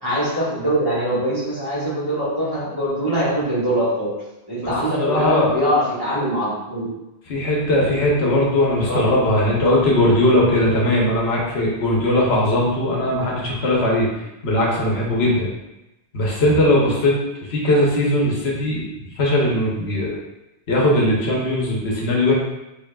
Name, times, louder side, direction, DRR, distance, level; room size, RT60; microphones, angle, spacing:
voice 1, 0.0-4.1 4.5-6.9 8.8-9.1, equal, 20° right, -10 dB, 1.5 m, -22 dB
voice 2, 5.0-5.6 7.3-14.1 14.4-15.5 16.1-17.2 17.5-20.1 20.7-22.3, left 1 dB, 80° left, -3 dB, 1.2 m, -19 dB
4.9 x 2.9 x 2.3 m, 0.97 s
omnidirectional pair, 1.1 m